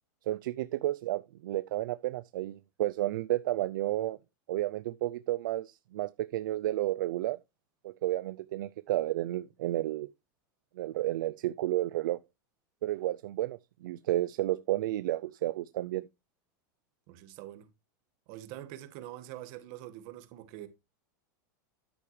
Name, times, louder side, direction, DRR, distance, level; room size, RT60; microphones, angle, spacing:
voice 1, 0.3-4.2 4.5-7.4 7.8-10.1 10.8-12.2 12.8-16.1, right 15 dB, 80° right, 0.4 m, -32 dB
voice 2, 17.1-17.7 18.3-20.7, right 13 dB, 55° right, 1.6 m, -45 dB
10.0 x 8.3 x 3.2 m
supercardioid pair, 135°, 11 cm